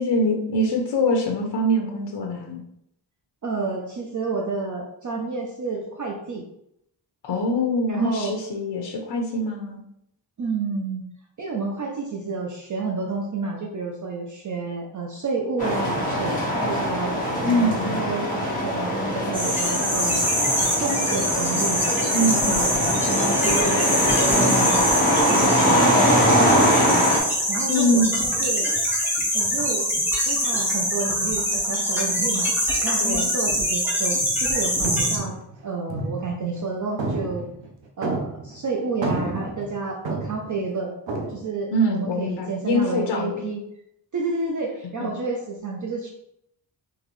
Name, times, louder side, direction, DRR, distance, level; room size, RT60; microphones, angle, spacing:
voice 1, 0.0-2.6 7.2-9.8 17.4-18.0 22.1-22.6 27.7-28.1 33.0-33.3 41.7-43.4 45.0-45.1, left 1 dB, 65° left, 0 dB, 0.7 m, -23 dB
voice 2, 3.4-6.4 7.9-8.3 10.4-11.1 11.4-18.3 18.6-20.3 20.8-21.9 22.2-22.7 23.0-23.8 24.3-24.8 25.0-27.0 27.5-28.7 29.3-29.8 30.3-32.5 32.8-35.4 35.6-37.5 38.0-40.9 41.3-43.6 44.1-46.1, right 4 dB, 45° right, 0 dB, 0.5 m, -30 dB
sound 1, 15.6-27.2, equal, 20° left, 1.3 m, -22 dB
sound 2, 19.3-35.2, equal, 5° right, 0.9 m, -24 dB
sound 3, 34.2-34.5 34.8-36.6 37.0-38.6 38.9-40.6 41.1-41.4, right 3 dB, 75° right, 0.8 m, -30 dB
3.8 x 3.0 x 3.1 m, 0.77 s
wide cardioid pair, 170°, 45 cm